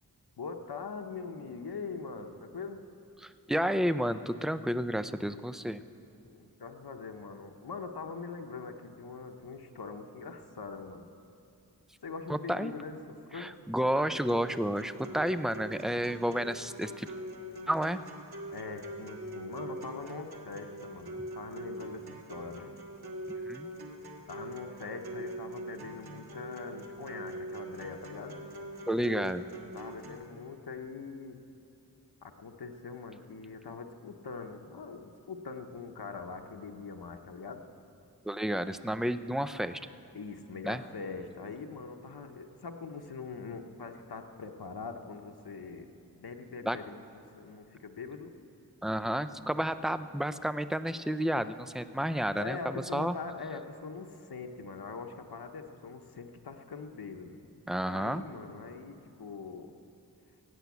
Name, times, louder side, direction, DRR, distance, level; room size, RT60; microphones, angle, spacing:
voice 1, 0.4-2.8 6.2-11.0 12.0-13.5 18.5-22.7 24.3-28.4 29.7-31.4 32.2-37.6 40.1-45.9 46.1-47.0 47.3-48.3 52.3-57.4 57.9-59.7, left 4 dB, 90° left, 4 dB, 0.9 m, -42 dB
voice 2, 3.2-5.8 12.3-12.7 13.3-17.1 17.7-18.0 23.4-23.7 28.9-29.5 38.2-39.8 40.6-40.8 46.6-46.8 48.8-53.2 57.7-58.2, equal, ahead, 12 dB, 0.5 m, -31 dB
sound 1, 14.3-30.3, right 1 dB, 85° right, 1.5 m, -43 dB
16.5 x 9.2 x 8.3 m, 2.7 s
wide cardioid pair, 60°, 37 cm